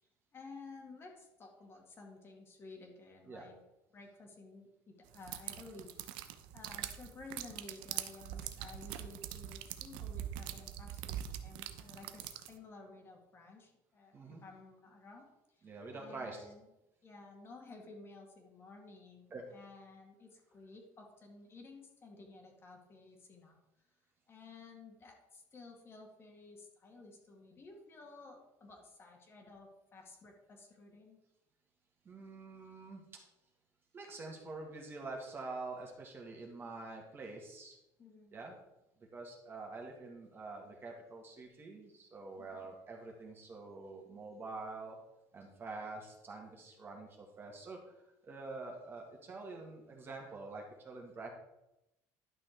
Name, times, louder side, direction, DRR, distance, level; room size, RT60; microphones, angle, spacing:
voice 1, 0.3-3.6 3.9-16.7 17.0-23.6 24.3-31.2 38.0-38.4 42.4-42.7, left 3 dB, 30° left, 1 dB, 2.0 m, -54 dB
sound 1, 5.1-12.6, right 11 dB, 90° right, 0.7 m, -43 dB
voice 2, 15.6-16.4 19.3-19.5 32.1-33.0 33.9-37.8 38.3-38.6 39.1-45.0 45.3-47.8 48.2-51.3, right 3 dB, 30° right, 0 dB, 1.9 m, -46 dB
11.0 x 6.2 x 4.5 m, 0.91 s
cardioid pair, 140°, 8 cm